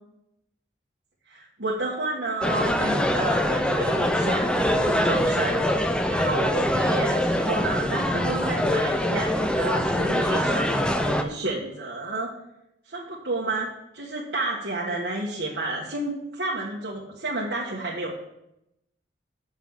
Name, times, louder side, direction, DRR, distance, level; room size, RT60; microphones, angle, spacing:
voice 1, 1.3-5.6 6.1-12.3 12.8-13.7 13.9-18.1, right 2 dB, 70° right, -4 dB, 1.5 m, -30 dB
sound 1, 2.4-11.2, left 1 dB, 5° left, 0.6 m, -24 dB
7.0 x 5.9 x 7.3 m, 0.84 s
head